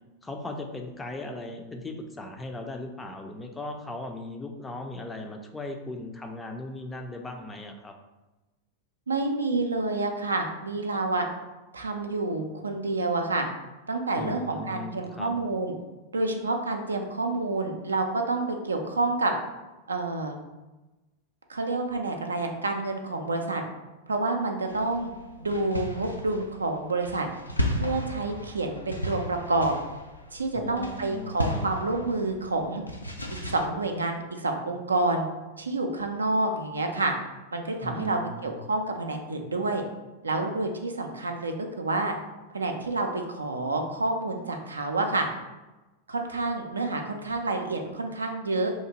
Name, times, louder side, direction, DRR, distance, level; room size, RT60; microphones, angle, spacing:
voice 1, 0.2-7.9 14.2-15.3 30.5-31.7 37.8-38.6, left 2 dB, 10° left, 3 dB, 0.4 m, -38 dB
voice 2, 9.1-11.3 11.7-13.5 13.9-15.7 16.1-19.3 19.9-20.4 21.5-23.6 24.1-25.1 25.4-27.3 27.7-29.7 30.3-32.8 33.3-35.3 35.6-37.1 37.5-39.8 40.2-42.1 42.5-45.3 46.1-48.7, right 2 dB, 75° right, 4 dB, 0.3 m, -28 dB
sound 1, 24.7-33.7, equal, 85° left, 0.3 m, -35 dB
2.8 x 2.4 x 2.8 m, 1.1 s
figure-of-eight pair, 90°, 0 cm